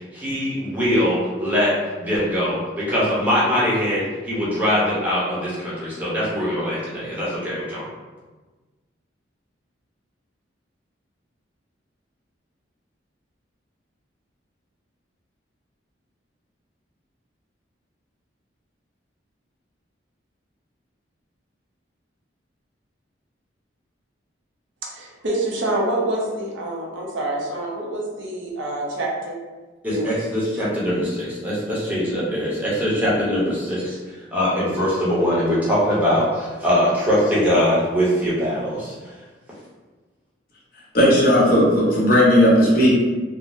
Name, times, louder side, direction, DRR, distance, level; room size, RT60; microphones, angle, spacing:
voice 1, 0.0-7.8 29.8-34.0 34.3-38.9, equal, 10° right, -8 dB, 0.8 m, -22 dB
voice 2, 24.8-29.4 29.9-30.2, right 1 dB, 75° right, -2 dB, 0.6 m, -26 dB
voice 3, 40.9-42.9, equal, 50° left, -6 dB, 0.8 m, -15 dB
3.6 x 2.0 x 2.5 m, 1.3 s
head